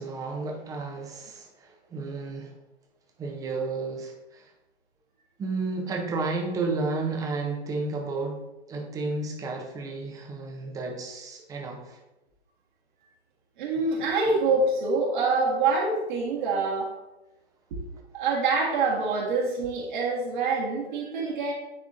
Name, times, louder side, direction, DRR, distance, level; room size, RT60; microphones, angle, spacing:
voice 1, 0.0-2.5 3.2-4.5 5.4-8.4 8.7-12.0, right 3 dB, 10° right, 2 dB, 0.8 m, -32 dB
voice 2, 13.6-16.9 17.7-17.8 18.1-21.5, right 3 dB, 50° right, -4 dB, 1.7 m, -25 dB
9.7 x 3.7 x 2.7 m, 0.98 s
figure-of-eight pair, 120°, 33 cm